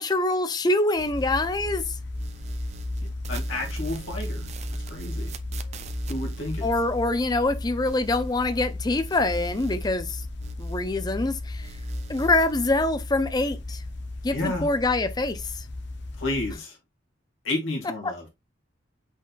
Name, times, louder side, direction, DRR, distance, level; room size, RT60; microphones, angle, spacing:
voice 1, 0.0-1.8 6.6-10.2 10.6-11.7 12.1-13.8 14.2-15.5 18.0-18.1, left 2 dB, 20° left, 0.4 m, -25 dB
sound 1, 1.0-16.5, left 2 dB, 60° left, 0.7 m, -35 dB
sound 2, 1.0-1.9 2.1-8.7 9.0-11.3 11.6-12.6, right 2 dB, 35° right, 0.4 m, -39 dB
voice 2, 3.3-4.5 4.9-5.3 6.1-6.7 14.3-14.7 16.2-16.8 17.4-18.2, left 2 dB, 80° left, 2.2 m, -31 dB
5.2 x 4.1 x 2.4 m
head